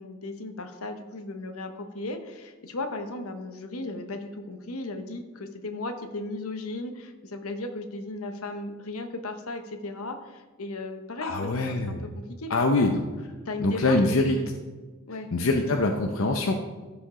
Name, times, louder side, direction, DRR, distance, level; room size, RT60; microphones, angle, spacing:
voice 1, 0.0-12.0 12.4-12.5 12.8-12.9 13.5-14.0 14.2-14.5 15.1-15.3, left 2 dB, 85° left, 7 dB, 1.0 m, -36 dB
voice 2, 11.2-12.1 12.5-13.0 13.6-14.4 15.3-16.5, left 2 dB, 70° left, 4 dB, 0.7 m, -24 dB
14.5 x 5.2 x 3.8 m, 1.2 s
head